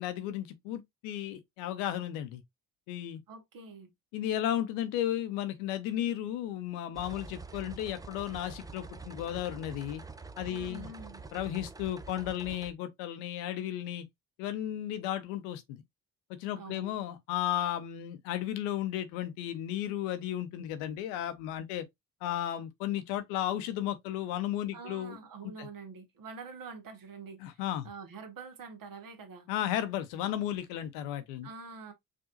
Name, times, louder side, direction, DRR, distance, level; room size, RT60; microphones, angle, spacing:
voice 1, 0.0-2.4 2.9-3.2 4.1-10.0 10.4-10.9 11.3-14.0 14.4-15.8 16.4-21.9 22.2-25.2 25.6-25.7 27.4-27.9 29.5-31.5, left 11 dB, 80° left, 0.8 m, -34 dB
voice 2, 3.3-3.9 10.5-11.2 16.5-16.9 24.7-27.4 27.8-29.5 31.4-31.9, right 4 dB, 50° right, 1.4 m, -46 dB
sound 1, 6.9-12.7, right 4 dB, 10° right, 0.4 m, -46 dB
4.9 x 2.7 x 2.5 m
hypercardioid pair, 50°, 42 cm